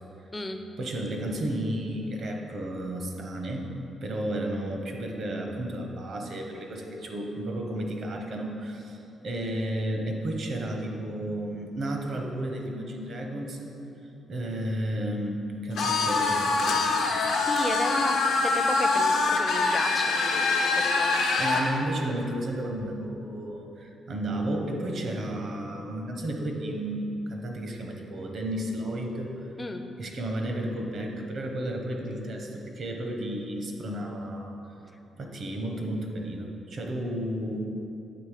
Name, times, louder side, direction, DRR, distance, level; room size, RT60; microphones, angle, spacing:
voice 1, 0.8-3.7 4.0-13.7 14.3-16.8 21.3-29.3 30.0-34.6 35.2-37.6, right 1 dB, 55° right, 2 dB, 0.8 m, -32 dB
sound 1, 15.8-21.7, left 3 dB, 85° left, 0.8 m, -24 dB
voice 2, 17.1-21.7 29.6-29.8, left 2 dB, 20° left, 6 dB, 0.4 m, -34 dB
8.0 x 3.1 x 4.9 m, 2.8 s
cardioid pair, 110°, 0 cm